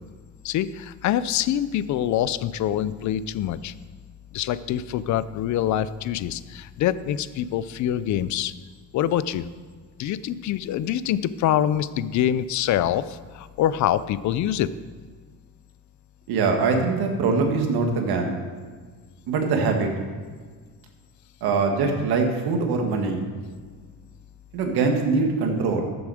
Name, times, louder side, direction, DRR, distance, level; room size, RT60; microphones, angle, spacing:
voice 1, 0.4-3.7 4.3-8.5 8.9-9.4 10.0-14.7, left 11 dB, 50° left, 16 dB, 0.4 m, -25 dB
voice 2, 16.3-18.4 19.3-19.9 21.4-23.2 24.5-25.9, right 4 dB, 70° right, 3 dB, 1.9 m, -23 dB
14.0 x 7.1 x 4.9 m, 1.5 s
cardioid pair, 160°, 40 cm